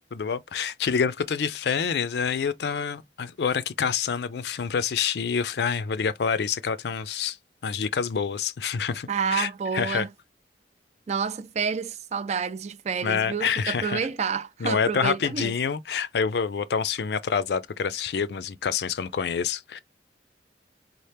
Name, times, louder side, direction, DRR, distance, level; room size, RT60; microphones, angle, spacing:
voice 1, 0.1-7.4 7.6-10.0 13.0-14.0 14.6-19.8, left 6 dB, 65° left, 0.4 m, -27 dB
voice 2, 9.1-10.1 11.1-15.5, right 6 dB, 40° right, 0.4 m, -29 dB
4.2 x 2.1 x 3.2 m
head